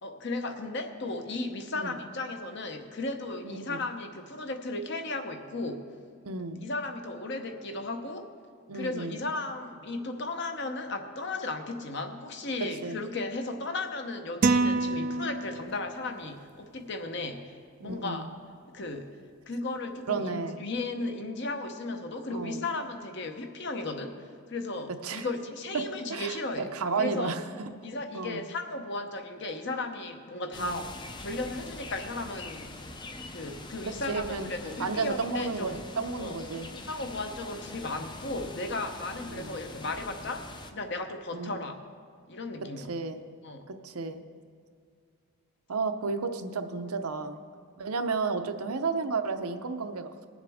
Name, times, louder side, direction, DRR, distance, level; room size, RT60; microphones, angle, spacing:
voice 1, 0.0-5.9 6.6-8.3 8.7-17.5 17.8-18.3 18.7-19.1 19.5-26.7 27.0-27.3 27.8-30.9 31.2-32.7 33.3-35.8 36.2-36.4 36.8-41.8 42.3-42.9 43.4-43.7, left 2 dB, 50° left, 6 dB, 0.8 m, -35 dB
voice 2, 3.4-3.8 6.2-6.6 8.7-9.2 12.8-13.0 17.8-18.3 20.1-20.6 22.3-22.6 25.0-25.3 25.7-25.8 26.1-26.4 26.7-27.4 28.1-28.4 30.6-30.8 33.8-34.5 34.8-36.7 39.3-39.6 41.3-41.5 42.8-43.2 43.7-44.2 45.7-47.4 47.8-50.3, right 4 dB, 85° right, 7 dB, 0.7 m, -32 dB
sound 1, 14.4-15.9, right 3 dB, 40° right, 0.4 m, -26 dB
sound 2, 30.5-40.7, left 2 dB, 20° left, 0.5 m, -43 dB
20.5 x 7.3 x 3.5 m, 2.1 s
head